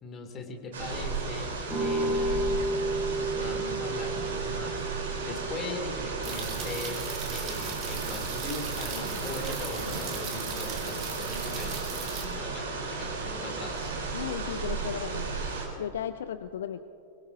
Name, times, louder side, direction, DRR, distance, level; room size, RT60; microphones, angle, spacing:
voice 1, 0.0-1.5 1.8-2.7 3.2-4.8 5.2-13.9, left 2 dB, 25° left, 3 dB, 2.5 m, -40 dB
sound 1, 0.7-15.7, right 4 dB, 60° right, 3.7 m, -34 dB
sound 2, 1.7-7.4, right 1 dB, ahead, 4.6 m, -33 dB
sound 3, 6.2-12.2, right 7 dB, 35° right, 2.5 m, -39 dB
voice 2, 14.1-15.3 15.8-16.8, left 9 dB, 60° left, 12 dB, 0.4 m, -35 dB
23.5 x 22.0 x 2.7 m, 2.7 s
figure-of-eight pair, 90°, 0 cm